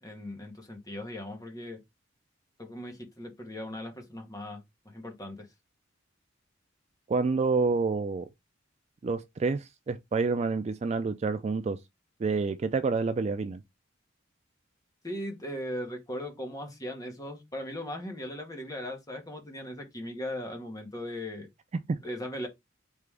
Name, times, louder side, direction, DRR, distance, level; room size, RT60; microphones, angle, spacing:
voice 1, 0.0-1.8 2.6-5.5 15.0-21.5 22.0-22.5, left 1 dB, 20° left, 1.2 m, -38 dB
voice 2, 7.1-8.3 9.0-11.8 12.2-13.6 21.9-22.0, right 4 dB, 35° right, 0.3 m, -28 dB
3.8 x 3.6 x 3.3 m
head